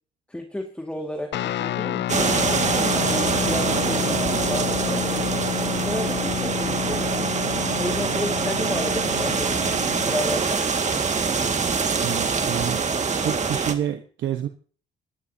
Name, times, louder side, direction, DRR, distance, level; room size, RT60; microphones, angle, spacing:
voice 1, 0.3-2.2 2.9-5.4 5.8-9.6 10.0-11.4, left 1 dB, 5° left, 3 dB, 1.9 m, -32 dB
Guitar, 1.3-10.4, left 12 dB, 65° left, 0.5 m, -30 dB
sound 1, 2.1-13.7, right 5 dB, 35° right, 1.9 m, -24 dB
voice 2, 12.0-12.8 13.2-14.5, right 10 dB, 70° right, 7 dB, 1.1 m, -28 dB
27.0 x 11.5 x 2.8 m, 0.43 s
cardioid pair, 90°, 20 cm